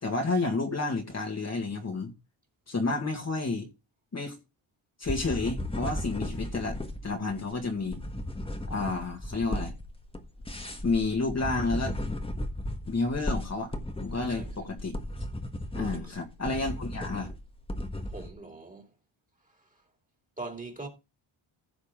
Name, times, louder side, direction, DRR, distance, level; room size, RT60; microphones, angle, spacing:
voice 1, 0.0-2.1 2.7-3.7 4.1-4.4 5.0-8.0 8.7-9.7 10.8-12.0 12.9-13.7 14.0-15.0 15.7-17.3, left 3 dB, 30° left, 2.0 m, -30 dB
sound 1, 5.1-18.3, left 1 dB, 10° left, 1.5 m, -35 dB
voice 2, 15.8-16.1 18.1-18.9 20.4-20.9, right 3 dB, 15° right, 2.8 m, -41 dB
15.5 x 6.5 x 3.8 m
cardioid pair, 125°, 49 cm